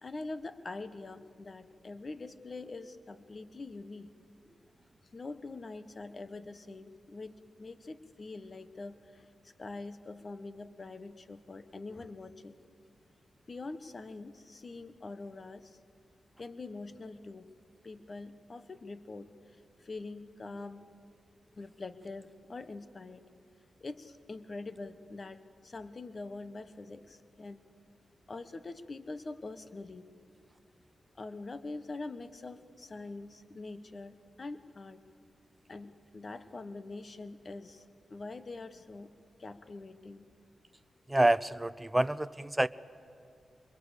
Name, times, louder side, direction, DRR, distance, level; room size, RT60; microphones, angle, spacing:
voice 1, 0.0-4.1 5.1-12.6 13.5-15.8 16.4-17.5 17.8-20.9 21.6-23.3 23.8-27.6 28.3-30.1 31.2-35.0 35.7-39.1 39.4-40.3, left 3 dB, 45° left, 12 dB, 1.2 m, -44 dB
voice 2, 41.1-42.7, right 1 dB, 15° right, 14 dB, 0.6 m, -27 dB
24.5 x 22.0 x 8.3 m, 2.6 s
cardioid pair, 65°, 0 cm